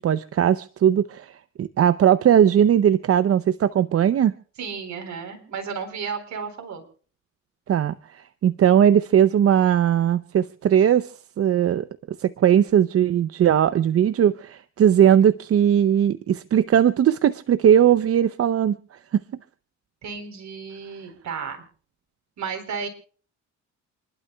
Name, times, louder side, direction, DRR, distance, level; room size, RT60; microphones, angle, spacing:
voice 1, 0.0-4.3 7.7-11.9 12.2-18.8 19.1-19.2, right 9 dB, 50° right, 14 dB, 0.6 m, -19 dB
voice 2, 4.6-6.8 20.0-21.6 22.4-22.9, right 6 dB, 65° right, 5 dB, 4.1 m, -33 dB
28.5 x 12.0 x 2.3 m, 0.40 s
cardioid pair, 90°, 30 cm